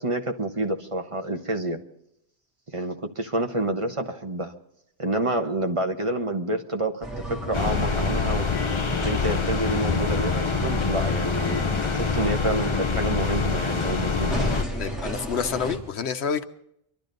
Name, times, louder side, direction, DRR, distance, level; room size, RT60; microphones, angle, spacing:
voice 1, 0.0-1.8 2.7-4.5 5.0-8.5 9.0-11.6 11.9-14.4, right 2 dB, 30° right, 4 dB, 1.1 m, -28 dB
sound 1, 7.0-15.8, equal, ahead, 3.2 m, -34 dB
sound 2, 7.5-14.6, left 5 dB, 35° left, 0.7 m, -25 dB
voice 2, 14.8-16.4, left 6 dB, 90° left, 9 dB, 1.1 m, -28 dB
25.5 x 12.0 x 4.0 m, 0.78 s
omnidirectional pair, 1.1 m